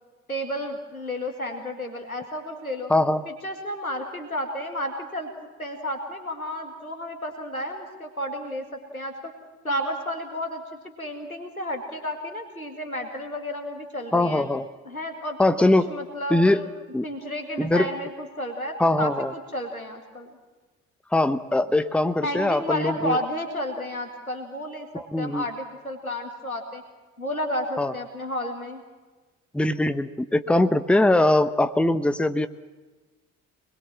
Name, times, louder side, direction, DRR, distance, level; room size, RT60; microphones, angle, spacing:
voice 1, 0.3-2.9 3.3-5.3 5.6-8.6 8.9-9.3 9.6-10.6 11.0-14.4 14.9-16.7 17.0-20.3 22.2-26.8 27.2-28.8, left 1 dB, 90° left, 4 dB, 2.0 m, -32 dB
voice 2, 2.9-3.2 14.1-14.7 15.4-15.9 16.3-16.6 16.9-17.1 17.6-17.9 18.8-19.3 21.1-23.2 24.9-25.4 27.8-27.9 29.5-32.5, left 1 dB, 5° left, 12 dB, 1.0 m, -21 dB
24.0 x 21.0 x 7.5 m, 1.3 s
figure-of-eight pair, 50°, 41 cm